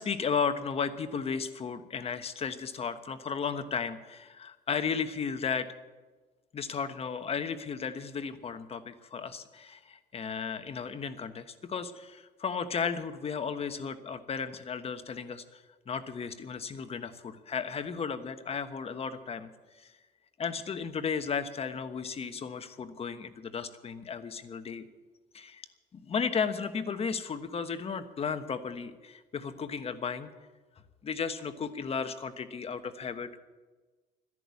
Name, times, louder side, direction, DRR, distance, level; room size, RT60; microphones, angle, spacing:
voice 1, 0.0-5.7 6.5-19.5 19.8-19.9 20.4-24.9 25.3-25.7 25.9-30.3 31.0-33.4, left 6 dB, 35° left, 10 dB, 1.2 m, -34 dB
13.0 x 11.0 x 8.4 m, 1.3 s
cardioid pair, 110°, 17 cm